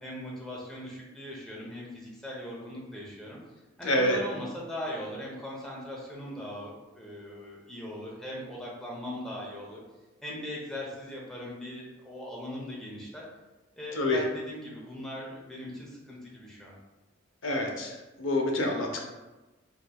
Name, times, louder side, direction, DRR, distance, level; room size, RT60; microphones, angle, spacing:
voice 1, 0.0-3.4 3.8-9.8 10.2-13.2 13.8-16.8, left 1 dB, 5° left, -4 dB, 0.7 m, -40 dB
voice 2, 3.8-4.2 13.9-14.2 17.4-19.0, left 1 dB, 85° left, 1 dB, 0.6 m, -27 dB
3.7 x 3.0 x 2.2 m, 1.1 s
head